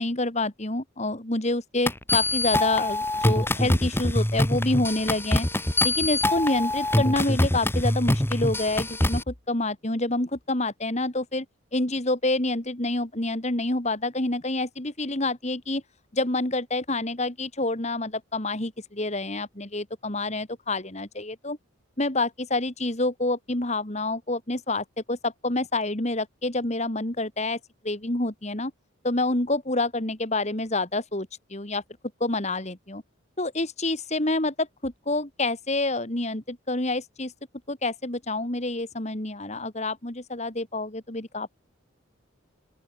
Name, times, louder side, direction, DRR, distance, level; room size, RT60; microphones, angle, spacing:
voice 1, 0.0-5.5 5.8-11.5 11.7-15.8 16.1-21.6 22.0-27.6 27.8-28.7 29.0-31.8 32.2-33.0 33.4-37.3 37.7-41.5, left 2 dB, 30° left, 2.2 m, -27 dB
sound 1, 1.9-9.2, left 1 dB, 10° left, 1.7 m, -24 dB
open air
head